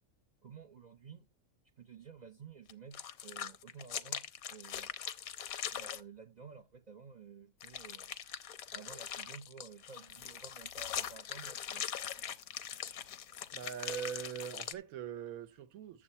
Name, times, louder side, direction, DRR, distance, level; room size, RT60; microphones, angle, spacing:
voice 1, 0.4-1.3 1.8-4.2 4.5-4.9 5.7-8.1 8.7-11.8, right 6 dB, 75° right, 0.4 m, -52 dB
sound 1, 2.7-6.0 7.6-14.7, left 9 dB, 85° left, 1.2 m, -42 dB
voice 2, 13.5-16.0, right 8 dB, 90° right, 1.2 m, -42 dB
9.7 x 7.2 x 4.2 m
omnidirectional pair, 1.5 m